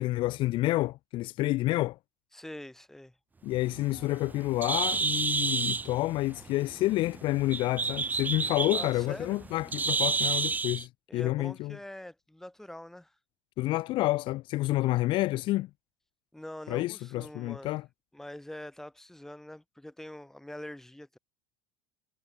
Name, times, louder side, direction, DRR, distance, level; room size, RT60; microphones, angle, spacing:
voice 1, 0.0-2.0 3.4-11.8 13.6-15.7 16.7-17.8, left 18 dB, 50° left, 0.6 m, -29 dB
voice 2, 2.3-3.2 8.7-9.4 11.1-13.1 16.3-17.8 18.1-21.2, left 1 dB, 5° left, 6.6 m, -44 dB
Bird, 3.6-10.8, right 4 dB, 15° right, 2.1 m, -31 dB
supercardioid pair, 120°, 11 cm